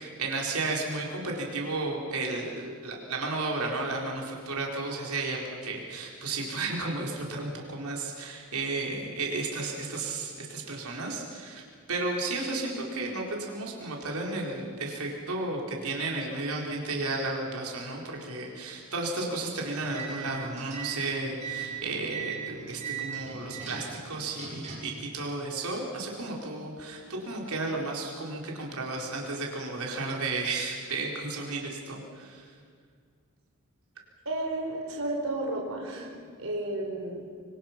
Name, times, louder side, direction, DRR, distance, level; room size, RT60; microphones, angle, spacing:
voice 1, 0.0-11.6 11.9-32.5, right 3 dB, 90° right, -1 dB, 4.3 m, -33 dB
sound 1, 19.8-25.0, right 7 dB, 35° right, 7.7 m, -39 dB
voice 2, 34.2-36.1 36.4-37.3, right 2 dB, 70° right, 0 dB, 4.4 m, -32 dB
25.5 x 25.5 x 6.0 m, 2.1 s
head